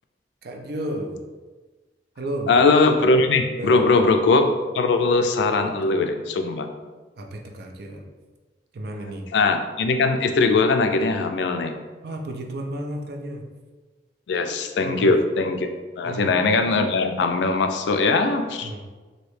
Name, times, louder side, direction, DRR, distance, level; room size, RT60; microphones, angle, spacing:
voice 1, 0.4-1.2 2.2-2.5 3.6-4.1 5.5-6.0 7.2-8.0 8.7-9.3 12.0-13.5 14.8-15.1 16.0-16.3 18.6-18.8, right 1 dB, 60° right, 2 dB, 0.5 m, -32 dB
voice 2, 2.5-4.5 4.7-6.7 9.3-11.7 14.3-15.7 16.0-18.7, left 3 dB, 75° left, 7 dB, 0.3 m, -20 dB
3.1 x 2.7 x 3.2 m, 1.3 s
head